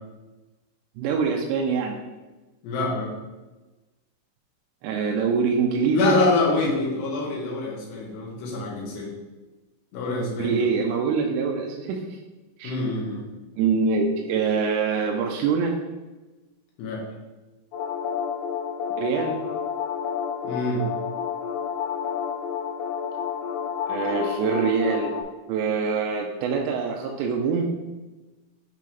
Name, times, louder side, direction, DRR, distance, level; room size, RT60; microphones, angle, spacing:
voice 1, 1.0-2.0 4.8-6.1 10.4-12.0 12.6-12.7 13.6-15.8 19.0-19.4 23.9-25.2 25.5-27.7, right 5 dB, 80° right, 1 dB, 2.6 m, -24 dB
voice 2, 2.6-3.1 5.9-9.1 9.9-10.7 12.6-13.2 16.8-17.0 20.4-20.9, left 2 dB, 65° left, -3 dB, 3.4 m, -25 dB
sound 1, 17.7-25.2, left 7 dB, 85° left, 2.3 m, -30 dB
8.4 x 5.3 x 3.3 m, 1.1 s
omnidirectional pair, 5.7 m